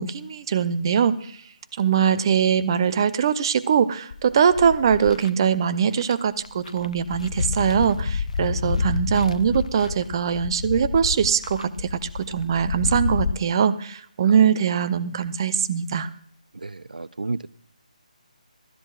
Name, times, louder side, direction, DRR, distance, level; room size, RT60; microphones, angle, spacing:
voice 1, 0.0-1.4 1.8-16.1, right 7 dB, 35° right, 14 dB, 0.6 m, -22 dB
sound 1, 4.1-5.3 6.0-6.1 6.5-13.3, left 5 dB, 55° left, 0.6 m, -29 dB
voice 2, 16.5-17.5, right 3 dB, 90° right, 18 dB, 0.4 m, -32 dB
19.5 x 13.0 x 2.4 m, 0.62 s
figure-of-eight pair, 155°, 4 cm